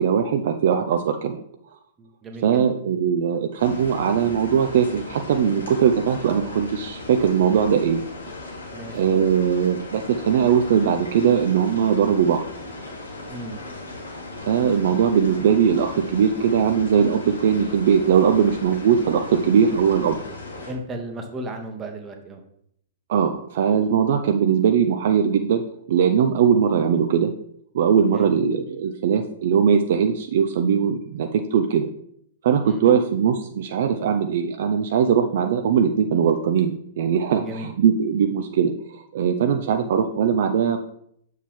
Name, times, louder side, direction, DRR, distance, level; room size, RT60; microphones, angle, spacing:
voice 1, 0.0-1.4 2.4-8.0 8.9-12.4 14.4-20.2 23.1-25.6 25.9-27.3 27.7-31.9 32.4-40.8, right 7 dB, 50° right, 6 dB, 0.4 m, -20 dB
voice 2, 2.0-2.6 8.7-9.0 13.3-13.6 20.7-22.4 28.1-28.4 32.7-32.8 37.4-37.7, right 1 dB, 15° right, 4 dB, 0.9 m, -35 dB
sound 1, 3.6-20.7, left 2 dB, 75° left, 1.9 m, -37 dB
7.0 x 4.6 x 3.6 m, 0.69 s
figure-of-eight pair, 110°, 0 cm